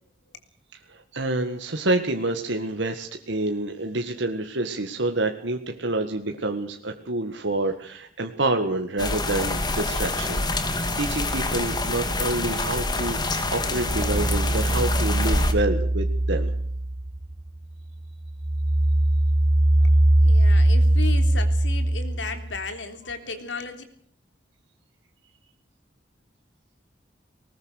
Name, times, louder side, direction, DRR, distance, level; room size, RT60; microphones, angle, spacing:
voice 1, 0.7-16.5, right 2 dB, 85° right, 4 dB, 1.9 m, -28 dB
sound 1, 9.0-15.5, left 2 dB, 25° left, 2.2 m, -27 dB
sound 2, 13.7-17.6 18.0-22.5, right 1 dB, 25° right, 0.8 m, -21 dB
voice 2, 20.2-23.8, left 4 dB, 90° left, 7 dB, 3.4 m, -35 dB
20.0 x 19.5 x 6.6 m, 0.63 s
head